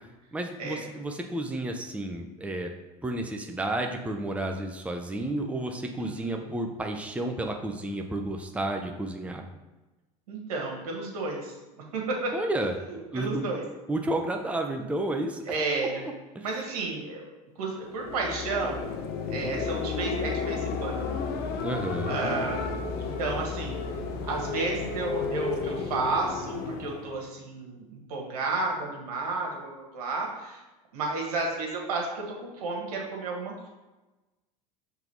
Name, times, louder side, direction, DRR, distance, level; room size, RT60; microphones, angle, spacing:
voice 1, 0.3-2.7 3.0-9.4 12.3-12.8 13.1-13.5 13.9-15.4 16.0-16.1 21.6-22.2, right 1 dB, 5° right, 3 dB, 0.7 m, -31 dB
voice 2, 6.0-6.5 10.3-11.6 11.9-12.3 13.1-13.6 15.5-16.0 16.4-17.3 17.6-18.9 19.3-21.0 22.1-23.8 24.3-30.6 30.9-33.7, right 3 dB, 80° right, 0 dB, 1.7 m, -32 dB
sound 1, 17.8-27.2, left 5 dB, 55° left, 0.8 m, -32 dB
5.9 x 3.5 x 4.6 m, 1.1 s
hypercardioid pair, 85°, 19 cm